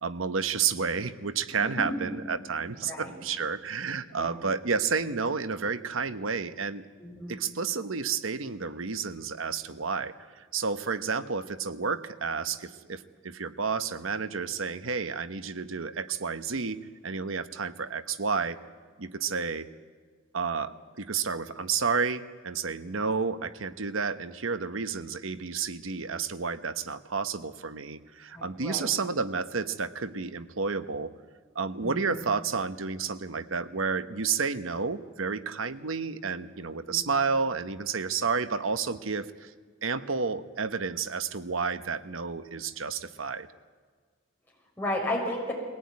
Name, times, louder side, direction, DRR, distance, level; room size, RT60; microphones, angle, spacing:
voice 1, 0.0-6.8 7.3-18.6 19.0-19.7 20.3-31.1 31.5-39.5 39.8-43.5, right 5 dB, 85° right, 11 dB, 1.0 m, -31 dB
voice 2, 7.0-7.4 28.3-28.9 31.8-32.2 36.8-37.0 44.8-45.5, left 1 dB, 10° left, -2 dB, 6.3 m, -33 dB
22.0 x 17.5 x 9.6 m, 1.5 s
head